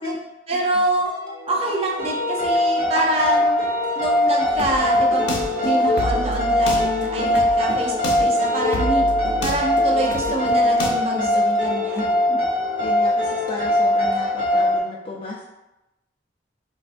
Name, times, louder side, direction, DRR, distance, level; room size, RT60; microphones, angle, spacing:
voice 1, 0.5-1.1 1.5-3.6 4.0-9.1 9.4-12.4, right 1 dB, 35° right, -2 dB, 0.5 m, -26 dB
sound 1, 1.1-14.8, left 1 dB, 50° left, 0.7 m, -38 dB
sound 2, 2.0-14.8, left 1 dB, 80° right, 1.0 m, -21 dB
sound 3, 4.5-10.9, left 1 dB, 90° left, 0.6 m, -29 dB
voice 2, 12.8-15.4, left 2 dB, 30° left, -4 dB, 0.3 m, -33 dB
4.2 x 2.2 x 2.5 m, 0.95 s
head